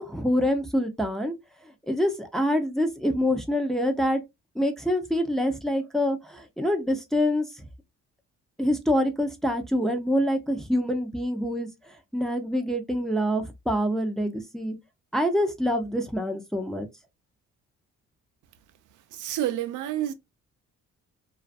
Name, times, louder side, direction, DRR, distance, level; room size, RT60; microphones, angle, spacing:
voice 1, 0.0-1.3 1.9-4.2 4.6-7.6 8.6-11.7 12.1-14.8 15.1-16.9, equal, ahead, 0.6 m, -26 dB
voice 2, 19.1-20.1, right 12 dB, 80° right, 0.5 m, -29 dB
2.4 x 2.4 x 2.4 m
cardioid pair, 90°, 30 cm